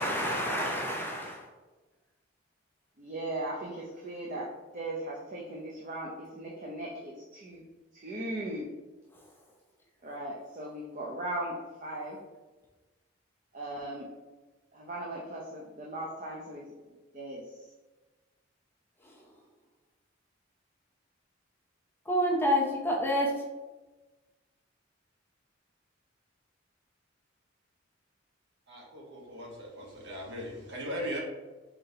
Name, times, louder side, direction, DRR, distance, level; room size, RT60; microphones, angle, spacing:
voice 1, 0.0-1.4 22.1-23.3, equal, 10° left, 0.6 m, -28 dB
voice 2, 3.0-4.5 4.7-7.6 7.9-8.7 10.0-12.2 13.5-14.1 14.7-16.7 17.1-17.4, right 1 dB, 40° right, 0.6 m, -38 dB
voice 3, 28.7-31.2, equal, 60° right, 1.2 m, -38 dB
4.2 x 4.0 x 2.7 m
head